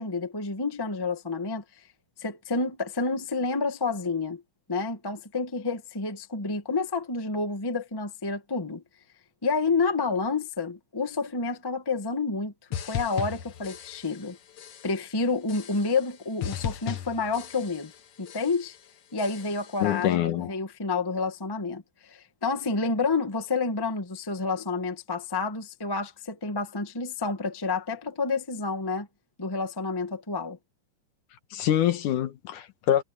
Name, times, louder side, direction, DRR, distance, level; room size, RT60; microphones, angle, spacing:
voice 1, 0.0-1.6 2.2-4.4 4.7-8.8 9.4-12.5 12.8-14.4 14.8-17.9 18.2-18.8 19.1-29.1 29.4-30.6, left 4 dB, 15° left, 0.9 m, -29 dB
sound 1, 12.7-14.3 14.6-15.1 15.5-16.1 16.4-18.0 18.3-18.8 19.2-19.8, left 10 dB, 55° left, 1.9 m, -37 dB
voice 2, 19.8-20.5 31.5-33.0, left 11 dB, 75° left, 2.6 m, -25 dB
omnidirectional pair, 3.8 m